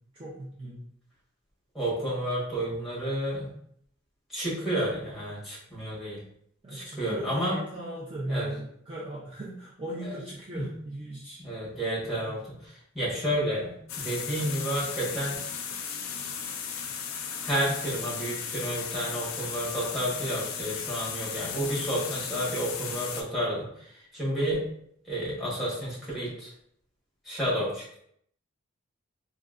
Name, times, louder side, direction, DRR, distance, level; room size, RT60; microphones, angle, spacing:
voice 1, 0.1-0.9 6.6-11.4 12.2-12.4, right 1 dB, 25° right, -7 dB, 0.5 m, -38 dB
voice 2, 1.7-3.5 4.3-6.2 6.7-7.6 8.3-8.5 10.0-10.1 10.5-10.7 11.4-15.4 16.9-17.0 17.4-24.7 25.0-26.5 27.2-28.0, equal, ahead, -8 dB, 1.1 m, -31 dB
sound 1, 13.9-23.2, left 7 dB, 75° left, 0.4 m, -36 dB
3.7 x 2.2 x 2.4 m, 0.69 s
head